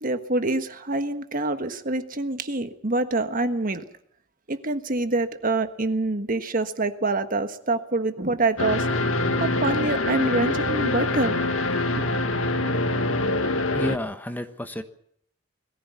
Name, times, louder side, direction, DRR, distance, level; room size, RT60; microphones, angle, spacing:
voice 1, 0.0-3.8 4.5-8.9 9.4-11.3, right 2 dB, 45° right, 1.5 m, -26 dB
sound 1, 8.6-14.0, left 2 dB, 80° left, 1.9 m, -24 dB
voice 2, 13.7-14.8, equal, 10° left, 1.2 m, -30 dB
21.5 x 15.5 x 8.3 m
head